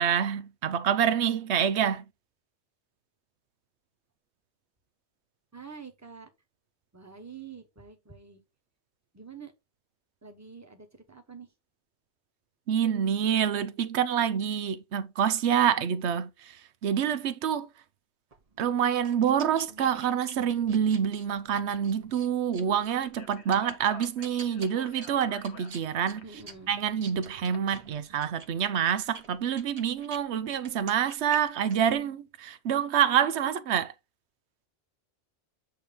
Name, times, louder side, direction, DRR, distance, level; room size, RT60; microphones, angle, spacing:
voice 1, 0.0-2.0 12.7-17.7 18.6-26.2 26.7-33.9, right 8 dB, 90° right, 1.0 m, -27 dB
voice 2, 5.5-6.3 6.9-8.4 9.1-9.5 10.2-11.5 19.7-20.1 26.2-26.7, right 5 dB, 15° right, 1.1 m, -47 dB
sound 1, 18.3-30.2 30.6-31.9, right 3 dB, 35° right, 1.1 m, -49 dB
Speech, 23.0-27.6, left 5 dB, 90° left, 1.5 m, -51 dB
8.6 x 3.0 x 5.2 m
omnidirectional pair, 1.1 m